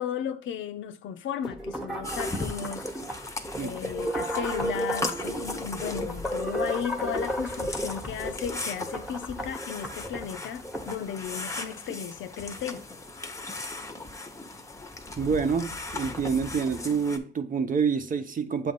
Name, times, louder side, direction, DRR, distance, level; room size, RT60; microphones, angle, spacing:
voice 1, 0.0-2.9 3.6-12.8, left 8 dB, 75° left, 0.6 m, -35 dB
sound 1, 1.4-11.0, equal, ahead, 1.0 m, -33 dB
sound 2, 2.0-17.2, left 2 dB, 15° left, 0.8 m, -38 dB
voice 2, 3.6-3.9 15.2-18.7, right 5 dB, 45° right, 0.8 m, -27 dB
7.5 x 2.6 x 5.3 m
cardioid pair, 90°, 20 cm